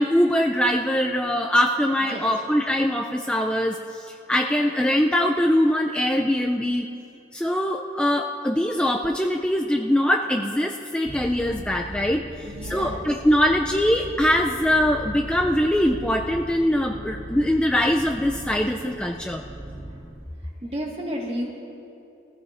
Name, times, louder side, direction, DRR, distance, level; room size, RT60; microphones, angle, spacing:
voice 1, 0.0-6.9 7.3-19.4, left 1 dB, 5° left, 1 dB, 0.4 m, -22 dB
sound 1, 11.1-20.2, right 1 dB, 10° right, 1.0 m, -38 dB
voice 2, 12.4-13.1 20.6-21.5, equal, 35° right, -2 dB, 1.8 m, -31 dB
21.0 x 15.0 x 2.6 m, 2.7 s
head